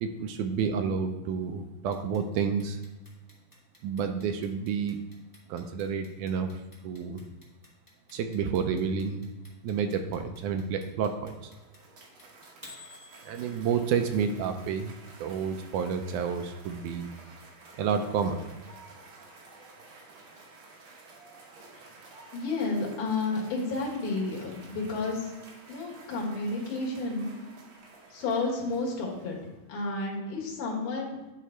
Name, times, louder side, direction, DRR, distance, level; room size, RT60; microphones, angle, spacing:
voice 1, 0.0-2.8 3.8-5.0 5.5-7.2 8.1-9.3 9.6-11.5 13.2-17.1 17.8-18.4, right 6 dB, 80° right, 6 dB, 2.0 m, -30 dB
Clock, 1.9-13.9, left 2 dB, 25° left, 0.4 m, -53 dB
Cheering / Applause, 11.2-29.8, right 3 dB, 65° right, 1.3 m, -52 dB
voice 2, 22.3-25.3 25.7-27.3 28.1-29.4 29.7-31.2, left 3 dB, 75° left, -3 dB, 3.0 m, -31 dB
10.0 x 3.8 x 4.4 m, 1.1 s
omnidirectional pair, 3.7 m